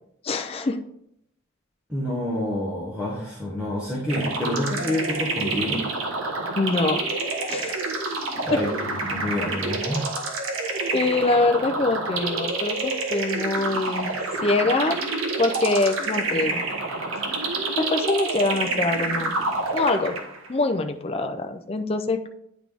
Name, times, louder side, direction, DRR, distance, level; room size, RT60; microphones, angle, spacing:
voice 1, 0.2-0.8 6.6-7.0 7.5-7.8 8.4-8.6 10.9-14.1 14.4-15.0 15.4-16.6 17.8-19.4 19.7-20.2 20.5-22.3, left 2 dB, 30° left, 6 dB, 0.4 m, -24 dB
voice 2, 1.9-5.8 8.4-10.1, left 1 dB, 5° right, -7 dB, 1.3 m, -28 dB
sound 1, 4.1-20.5, right 3 dB, 90° right, 1.2 m, -28 dB
9.5 x 4.0 x 3.5 m, 0.74 s
head